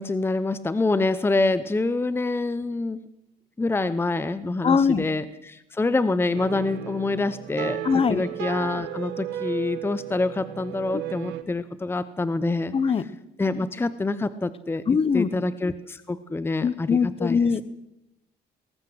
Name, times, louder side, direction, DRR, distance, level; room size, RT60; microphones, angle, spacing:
voice 1, 0.0-3.0 3.6-13.1 13.4-14.8 15.1-17.4, left 3 dB, 15° left, 14 dB, 0.9 m, -26 dB
voice 2, 4.6-5.1 7.8-8.2 12.7-13.0 14.9-15.3 16.6-17.7, left 6 dB, 35° left, 16 dB, 1.2 m, -21 dB
sound 1, 6.3-11.4, right 12 dB, 85° right, 1.8 m, -34 dB
20.5 x 18.5 x 7.9 m, 0.88 s
cardioid pair, 110°, 17 cm